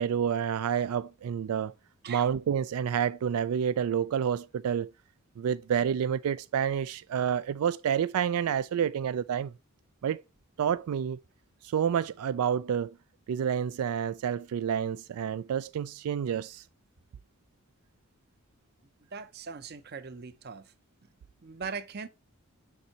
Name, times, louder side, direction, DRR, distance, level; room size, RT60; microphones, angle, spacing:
voice 1, 0.0-1.7 2.1-4.9 5.4-9.5 10.0-10.2 10.6-11.2 11.6-12.9 13.3-16.6, right 8 dB, 90° right, 0.3 m, -29 dB
voice 2, 19.1-20.6 21.4-22.1, right 5 dB, 45° right, 0.6 m, -40 dB
6.8 x 5.4 x 2.9 m
head